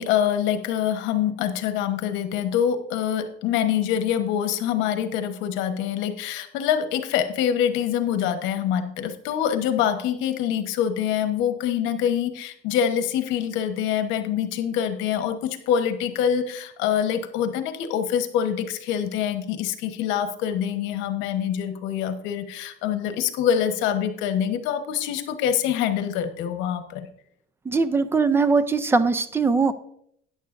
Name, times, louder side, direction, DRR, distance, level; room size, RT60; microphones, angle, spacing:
voice 1, 0.0-27.1, left 9 dB, 80° left, 8 dB, 1.1 m, -25 dB
voice 2, 27.7-29.7, right 4 dB, 10° right, 13 dB, 0.4 m, -21 dB
13.0 x 9.6 x 2.5 m, 0.70 s
cardioid pair, 170°, 19 cm